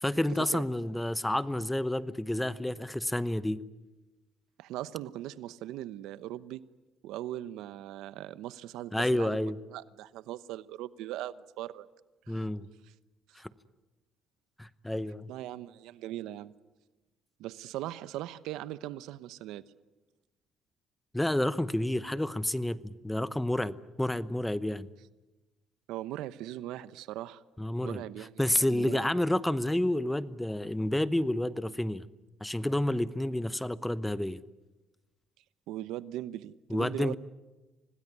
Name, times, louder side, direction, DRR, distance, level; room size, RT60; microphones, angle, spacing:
voice 1, 0.0-3.6 8.9-9.6 12.3-12.7 13.3-13.5 14.6-15.3 21.1-24.9 27.6-28.0 28.4-32.1 32.4-34.4 36.7-37.1, left 1 dB, 5° left, 16 dB, 0.9 m, -30 dB
voice 2, 4.6-6.6 7.0-9.4 9.7-11.9 12.3-12.5 15.3-16.5 17.4-19.6 25.9-27.4 27.8-28.4 28.7-29.0 35.7-37.1, right 14 dB, 85° right, 16 dB, 0.9 m, -39 dB
26.0 x 19.0 x 9.7 m, 1.1 s
cardioid pair, 100°, 0 cm